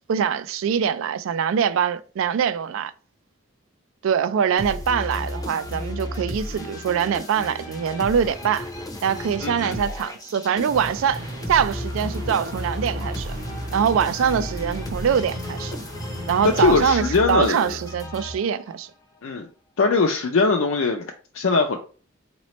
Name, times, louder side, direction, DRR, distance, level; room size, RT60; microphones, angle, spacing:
voice 1, 0.1-2.9 4.0-8.7 9.0-13.4 13.7-15.8 16.3-18.9, right 7 dB, 75° right, 0.3 m, -23 dB
sound 1, 4.6-18.8, left 1 dB, 15° left, 0.5 m, -34 dB
voice 2, 9.4-9.8 16.6-17.6 19.2-19.5 19.8-21.8, left 4 dB, 70° left, 0.5 m, -21 dB
sound 2, 10.7-16.9, right 1 dB, 50° right, 0.8 m, -35 dB
4.0 x 3.0 x 3.0 m
head